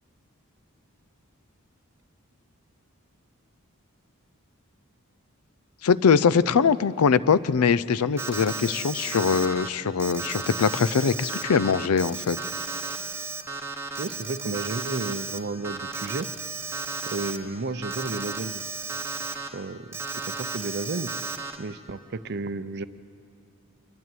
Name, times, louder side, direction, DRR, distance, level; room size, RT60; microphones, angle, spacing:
voice 1, 5.8-12.4, left 6 dB, 90° left, 18 dB, 0.5 m, -22 dB
Alarm, 8.2-9.7 10.0-15.4 15.6-17.4 17.8-19.5 19.9-21.6, right 4 dB, 10° right, 1.0 m, -34 dB
voice 2, 14.0-16.3 17.1-18.6 19.5-20.0 20.4-21.1 21.6-22.8, right 3 dB, 50° right, 14 dB, 0.6 m, -32 dB
27.5 x 12.5 x 9.1 m, 2.5 s
head